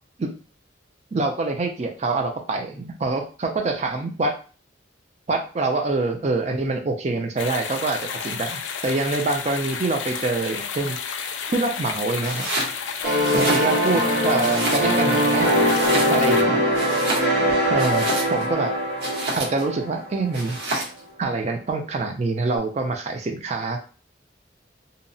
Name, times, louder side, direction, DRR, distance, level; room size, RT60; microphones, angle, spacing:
voice 1, 1.1-4.3 5.3-11.0 11.5-12.5 13.3-15.5 16.1-16.6 17.7-18.7 19.3-20.8 21.2-23.8, right 3 dB, 35° right, 4 dB, 0.4 m, -25 dB
sound 1, 7.4-16.4, left 6 dB, 80° left, 0.4 m, -31 dB
Domestic sounds home sounds, 12.2-12.8 13.1-14.0 14.4-15.2 15.6-16.4 16.7-18.5 19.0-19.7 20.3-21.0, right 2 dB, 60° right, 0.8 m, -29 dB
sound 2, 13.0-20.5, equal, 75° right, 1.4 m, -22 dB
2.8 x 2.0 x 2.6 m, 0.37 s
head